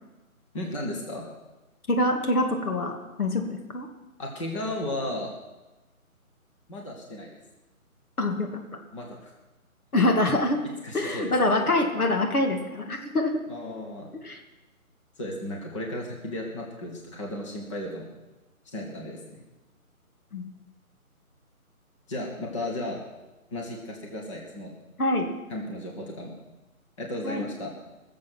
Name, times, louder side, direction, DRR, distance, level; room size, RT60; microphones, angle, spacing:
voice 1, 0.5-1.2 4.2-5.3 6.7-7.4 8.9-9.3 10.8-11.5 13.5-14.1 15.2-18.1 18.7-19.4 22.1-23.0 23.5-24.7 25.5-26.3 27.0-27.7, left 1 dB, 20° left, -1 dB, 1.5 m, -34 dB
voice 2, 1.9-3.9 8.2-8.5 9.9-10.6 10.9-13.4 14.2-14.4 20.3-20.4 25.0-25.3 27.2-27.5, left 2 dB, 80° left, 3 dB, 2.5 m, -25 dB
20.0 x 7.5 x 6.2 m, 1.1 s
figure-of-eight pair, 165°, 44 cm